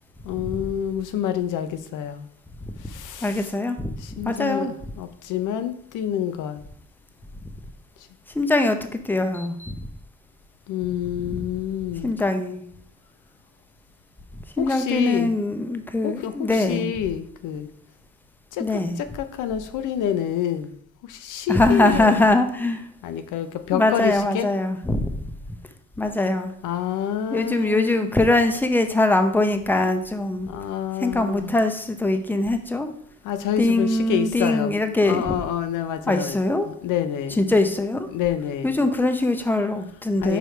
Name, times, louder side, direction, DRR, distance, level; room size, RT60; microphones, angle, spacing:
voice 1, 0.2-2.3 2.8-3.5 4.0-6.6 10.7-12.1 14.6-15.3 16.0-17.7 18.5-20.7 21.0-22.2 23.0-24.5 26.6-28.1 30.5-31.5 33.2-36.4 36.7-37.5 38.1-38.8 40.2-40.4, left 10 dB, 85° left, 0.6 m, -28 dB
voice 2, 3.2-4.7 8.3-9.8 11.2-11.4 12.0-12.6 14.6-16.9 18.6-19.0 21.5-22.9 23.7-25.3 26.0-26.5 27.3-30.5 31.0-32.9 33.6-35.4 36.1-36.7 37.4-38.1 38.6-40.4, left 2 dB, 5° left, 0.7 m, -22 dB
4.9 x 4.9 x 4.4 m
cardioid pair, 90°, 30 cm